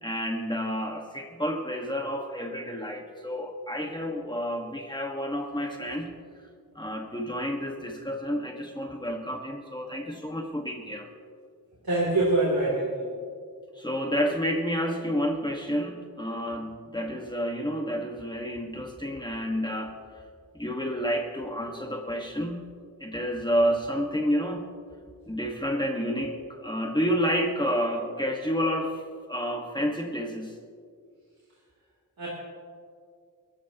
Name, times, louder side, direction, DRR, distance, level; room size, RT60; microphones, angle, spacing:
voice 1, 0.0-6.1 6.7-11.1 13.7-20.0 20.5-22.6 23.0-24.7 25.3-29.0 29.3-30.6, equal, 10° left, 1 dB, 1.6 m, -30 dB
voice 2, 11.8-13.1 32.2-32.3, right 2 dB, 90° right, -6 dB, 3.3 m, -24 dB
29.5 x 15.0 x 3.0 m, 2.2 s
wide cardioid pair, 60°, 35 cm